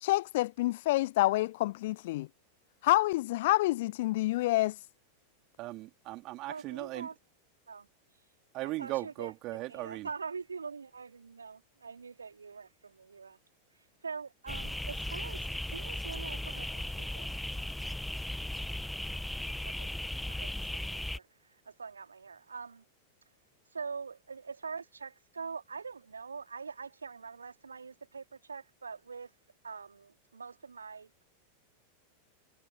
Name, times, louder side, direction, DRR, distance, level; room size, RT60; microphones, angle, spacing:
voice 1, 0.0-2.3 2.8-4.7, left 18 dB, 50° left, 0.6 m, -28 dB
voice 2, 5.6-7.1 8.5-10.1, right 19 dB, 40° right, 3.3 m, -38 dB
voice 3, 6.5-7.1 7.7-7.9 8.6-9.3 9.7-13.4 13.7-17.3 19.6-19.9 20.3-22.8 23.7-29.4 29.6-31.2, right 5 dB, 75° right, 3.3 m, -44 dB
sound 1, 14.5-21.2, left 1 dB, 5° left, 1.6 m, -37 dB
figure-of-eight pair, 90°, 0 cm